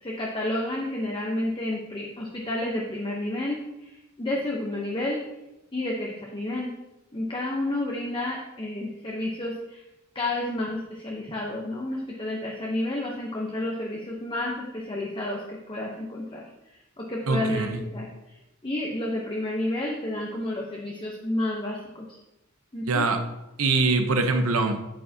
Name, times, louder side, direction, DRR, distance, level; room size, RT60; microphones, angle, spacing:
voice 1, 0.0-5.3 5.7-6.7 7.1-9.8 10.1-16.5 17.0-18.4 18.6-22.1 22.7-23.1, left 1 dB, 25° left, -2 dB, 0.8 m, -30 dB
voice 2, 17.3-17.8 22.9-23.2 23.6-24.8, right 3 dB, 85° right, 6 dB, 0.9 m, -23 dB
8.7 x 8.1 x 2.8 m, 0.96 s
head